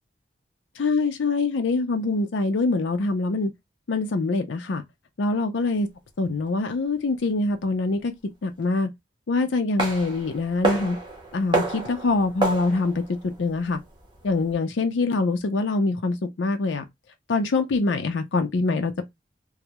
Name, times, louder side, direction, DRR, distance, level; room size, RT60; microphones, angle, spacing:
voice 1, 0.8-3.5 3.9-4.8 5.2-5.9 6.2-8.1 8.4-8.9 9.3-11.0 11.3-13.8 14.2-16.8 17.3-19.0, left 3 dB, 90° left, 0.5 m, -24 dB
sound 1, 9.8-14.5, right 3 dB, 25° right, 0.6 m, -30 dB
2.3 x 2.0 x 2.8 m
head